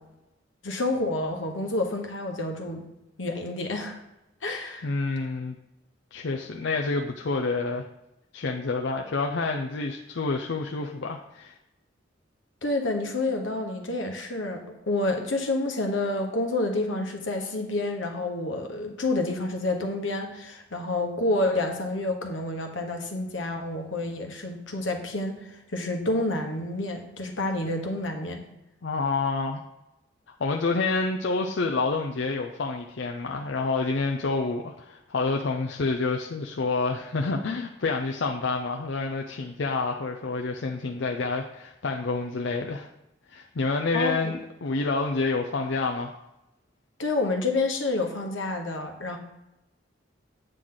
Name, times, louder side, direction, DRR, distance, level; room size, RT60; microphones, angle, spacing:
voice 1, 0.6-2.8 3.2-4.0 4.4-4.9 12.6-28.4 43.9-44.3 47.0-49.2, left 2 dB, 90° left, 4 dB, 1.3 m, -29 dB
voice 2, 4.8-5.6 6.1-7.8 8.3-11.5 28.8-29.6 30.3-42.9 43.3-46.1, left 3 dB, 70° left, 3 dB, 0.6 m, -28 dB
9.0 x 6.3 x 3.9 m, 0.92 s
head